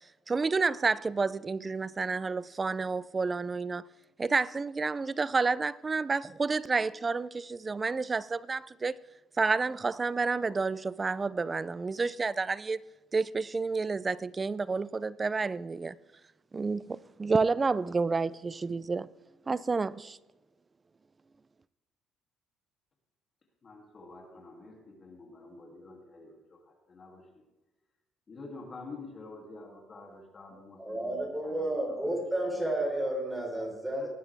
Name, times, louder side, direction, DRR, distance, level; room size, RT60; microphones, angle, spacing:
voice 1, 0.3-3.8 4.2-9.0 9.4-12.8 13.1-15.9 16.5-19.1 19.5-20.2, right 4 dB, 25° right, 0.4 m, -30 dB
voice 2, 23.6-27.2 28.3-32.7 33.9-34.1, left 3 dB, 40° left, 2.7 m, -48 dB
voice 3, 30.8-34.1, right 1 dB, 10° right, 4.2 m, -31 dB
19.0 x 9.5 x 3.5 m
cardioid pair, 90°, 0 cm